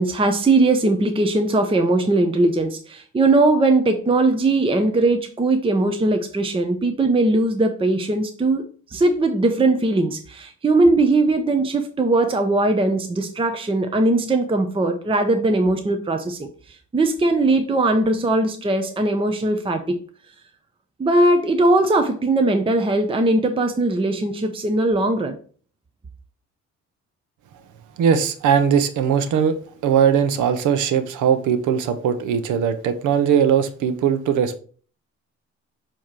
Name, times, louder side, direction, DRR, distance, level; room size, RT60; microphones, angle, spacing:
voice 1, 0.0-20.0 21.0-25.4, right 2 dB, 20° right, 0.6 m, -20 dB
voice 2, 28.0-29.6 29.8-34.6, right 8 dB, 85° right, 0.8 m, -19 dB
7.2 x 3.0 x 4.6 m
cardioid pair, 90°, 30 cm